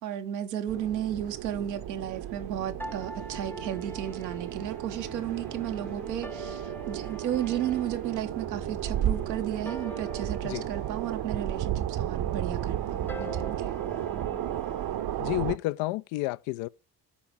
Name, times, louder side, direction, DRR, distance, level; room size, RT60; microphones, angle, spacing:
voice 1, 0.0-13.7, right 10 dB, 85° right, 1.1 m, -34 dB
sound 1, 0.7-15.6, right 11 dB, 45° right, 0.8 m, -33 dB
sound 2, 2.8-15.0, left 1 dB, 5° left, 0.7 m, -45 dB
voice 2, 15.2-16.7, left 19 dB, 65° left, 0.6 m, -30 dB
8.6 x 4.9 x 7.0 m
hypercardioid pair, 55°, 49 cm